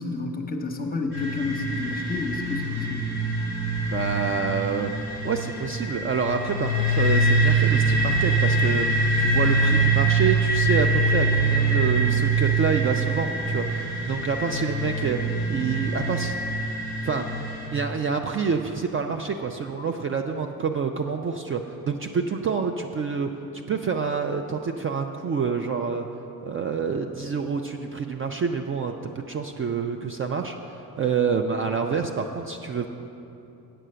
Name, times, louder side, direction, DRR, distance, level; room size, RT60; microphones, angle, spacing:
voice 1, 0.0-3.0, left 3 dB, 25° left, 4 dB, 0.9 m, -30 dB
sound 1, 1.1-17.7, right 2 dB, 75° right, 2.2 m, -24 dB
voice 2, 3.9-4.9 5.2-16.4 17.0-17.3 17.7-23.3 23.7-26.1 26.4-32.9, right 5 dB, 35° right, 5 dB, 0.4 m, -27 dB
8.9 x 6.2 x 6.7 m, 2.9 s
cardioid pair, 120°, 38 cm